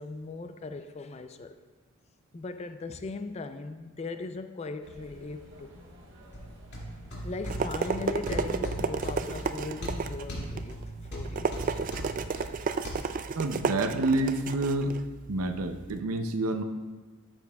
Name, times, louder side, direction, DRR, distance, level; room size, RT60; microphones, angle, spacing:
voice 1, 0.0-1.6 2.3-5.7 7.2-11.8, left 3 dB, 30° left, 9 dB, 0.4 m, -39 dB
sound 1, 4.8-10.0, equal, 55° right, 1.4 m, -51 dB
sound 2, 6.3-12.9, equal, 50° left, 2.4 m, -38 dB
sound 3, 7.1-16.0, right 5 dB, 40° right, 0.3 m, -33 dB
voice 2, 13.4-14.9 15.3-16.6, right 2 dB, 90° right, 8 dB, 0.6 m, -28 dB
13.5 x 6.9 x 2.3 m, 1.3 s
head